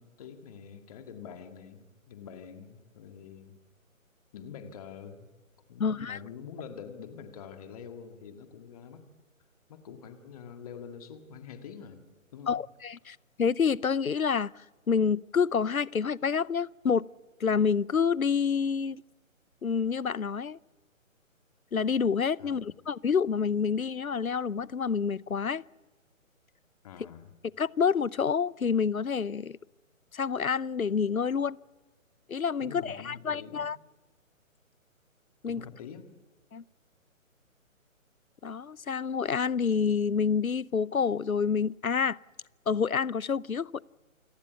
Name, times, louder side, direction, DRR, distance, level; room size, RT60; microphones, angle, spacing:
voice 1, 0.0-3.6 4.3-5.3 5.7-9.0 9.7-12.0 12.3-12.5 22.4-22.6 26.8-27.3 32.6-33.7 35.5-36.1, left 7 dB, 25° left, 2.0 m, -45 dB
voice 2, 5.8-6.2 12.5-17.1 17.4-19.0 19.6-20.6 21.7-25.6 27.6-29.6 30.1-31.6 32.3-33.8 35.4-35.6 36.5-36.6 38.4-42.2 42.7-43.8, left 6 dB, 80° left, 0.7 m, -28 dB
28.0 x 18.0 x 8.2 m
figure-of-eight pair, 140°, 41 cm